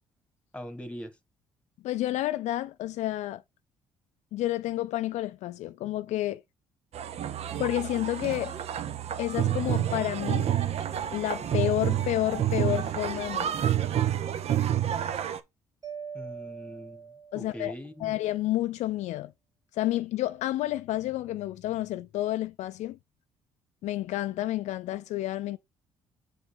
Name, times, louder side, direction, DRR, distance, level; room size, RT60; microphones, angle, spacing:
voice 1, 0.5-1.2 16.1-18.2, equal, 10° left, 1.5 m, -42 dB
voice 2, 1.8-3.4 4.3-6.4 7.6-8.6 9.2-10.5 11.1-13.6 17.3-17.7 18.0-19.3 19.7-23.0 23.8-25.6, left 15 dB, 70° left, 0.4 m, -30 dB
sound 1, 6.9-15.4, right 11 dB, 60° right, 0.8 m, -29 dB
Mallet percussion, 15.8-17.9, right 7 dB, 30° right, 2.6 m, -42 dB
6.3 x 4.9 x 3.5 m
supercardioid pair, 60°, 13 cm